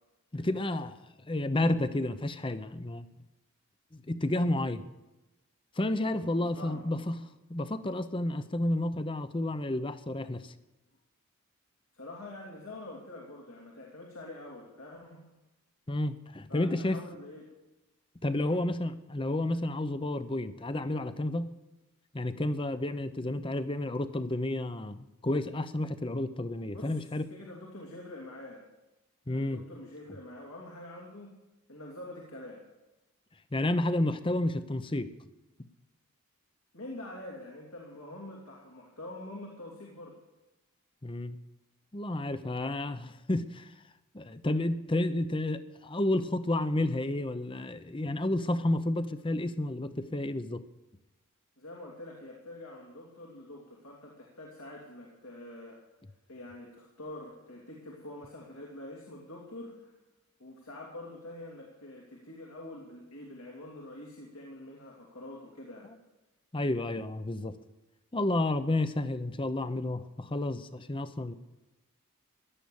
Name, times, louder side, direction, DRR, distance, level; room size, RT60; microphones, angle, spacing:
voice 1, 0.3-1.0 1.2-3.1 3.9-4.8 5.8-7.2 7.5-10.5 15.9-17.0 18.2-21.5 22.1-27.3 29.3-29.6 33.5-35.1 41.0-41.4 41.9-43.7 44.1-50.7 66.5-67.5 68.1-71.3, left 1 dB, 25° left, 12 dB, 0.7 m, -31 dB
voice 2, 6.0-6.9 11.9-15.3 16.5-17.5 18.4-18.6 26.7-28.7 29.3-31.3 31.7-32.6 36.7-40.2 51.6-55.9 56.3-59.9 60.4-65.9, left 1 dB, 80° left, -2 dB, 3.0 m, -46 dB
16.5 x 11.5 x 7.1 m, 1.0 s
head